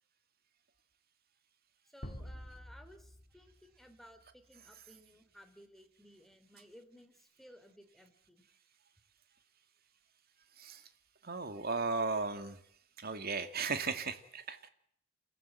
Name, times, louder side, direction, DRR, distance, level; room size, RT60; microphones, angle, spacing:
voice 1, 1.9-8.4, equal, ahead, 5 dB, 3.2 m, -58 dB
sound 1, 2.0-4.5, equal, 40° left, 2.0 m, -48 dB
voice 2, 11.2-12.6 13.0-14.7, right 4 dB, 50° right, 9 dB, 2.3 m, -36 dB
29.0 x 15.0 x 7.8 m, 0.68 s
head